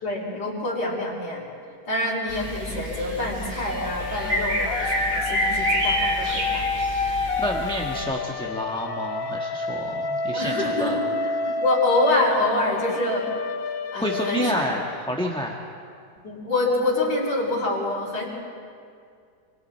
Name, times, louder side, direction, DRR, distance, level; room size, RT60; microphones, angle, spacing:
voice 1, 0.0-1.4 1.9-6.7 10.3-13.3 13.9-14.7 16.2-18.2, left 2 dB, 90° left, -5 dB, 5.0 m, -26 dB
sound 1, 2.3-8.0, right 1 dB, 85° right, 4.6 m, -28 dB
sound 2, 3.7-15.5, left 3 dB, 55° left, 1.3 m, -29 dB
voice 2, 7.4-11.0 13.9-15.6, equal, 5° left, 0 dB, 1.2 m, -29 dB
28.5 x 26.5 x 4.5 m, 2.3 s
omnidirectional pair, 1.9 m